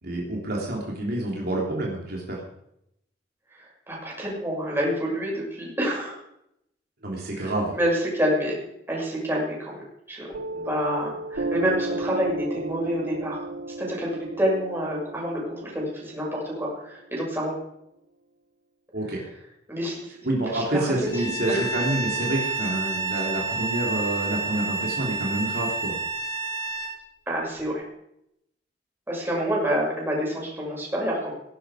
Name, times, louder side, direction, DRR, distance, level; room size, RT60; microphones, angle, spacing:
voice 1, 0.0-2.4 7.0-7.8 18.9-19.2 20.2-26.0, right 1 dB, 60° right, -2 dB, 3.4 m, -28 dB
voice 2, 3.6-6.2 7.4-8.6 8.9-10.3 10.5-13.4 13.8-17.5 19.7-21.0 21.2-21.7 27.3-27.8 29.1-31.3, equal, 15° right, -4 dB, 6.7 m, -28 dB
Piano, 10.3-17.4, right 2 dB, 90° right, 0.9 m, -34 dB
Bowed string instrument, 21.1-27.0, right 3 dB, 20° left, 4.7 m, -29 dB
17.5 x 12.0 x 5.1 m, 0.78 s
head